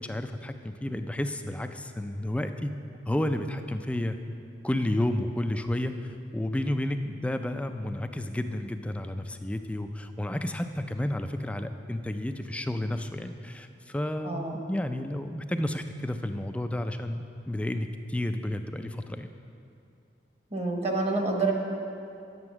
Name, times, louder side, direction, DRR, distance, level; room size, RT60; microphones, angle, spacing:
voice 1, 0.0-2.8 3.1-4.2 4.6-19.3, left 1 dB, 5° left, 7 dB, 0.3 m, -31 dB
voice 2, 14.2-14.6 20.5-21.5, right 3 dB, 35° right, 1 dB, 1.2 m, -27 dB
9.6 x 7.8 x 6.0 m, 2.6 s
head